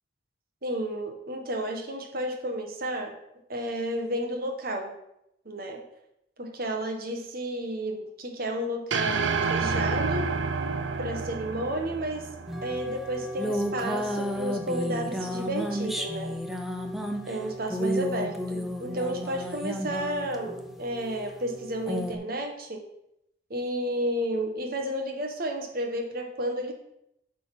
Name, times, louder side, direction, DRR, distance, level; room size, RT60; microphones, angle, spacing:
voice 1, 0.6-3.1 3.5-4.9 5.4-5.8 6.4-10.3 11.0-12.3 12.6-16.3 17.3-22.8 23.5-26.7, right 1 dB, 55° right, 3 dB, 1.3 m, -32 dB
sound 1, 8.9-13.3, right 4 dB, 90° right, 0.6 m, -29 dB
sound 2, 12.5-22.2, equal, ahead, 0.6 m, -32 dB
8.6 x 3.7 x 6.1 m, 0.81 s
head